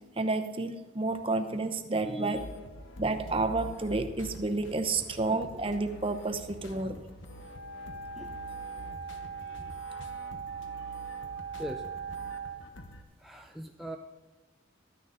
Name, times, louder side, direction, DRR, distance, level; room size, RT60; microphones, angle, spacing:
voice 1, 0.2-2.4 3.0-7.0, right 3 dB, 30° right, 6 dB, 0.8 m, -30 dB
voice 2, 2.0-2.5 6.7-7.0 8.1-8.4 10.7-10.9 11.6-11.9 12.6-12.7 13.2-14.0, equal, ahead, 2 dB, 0.4 m, -41 dB
sound 1, 2.3-13.0, left 1 dB, 75° left, 1.1 m, -47 dB
Wind instrument woodwind instrument, 7.3-12.6, right 6 dB, 50° left, 3.5 m, -40 dB
13.0 x 10.0 x 4.0 m, 1.2 s
head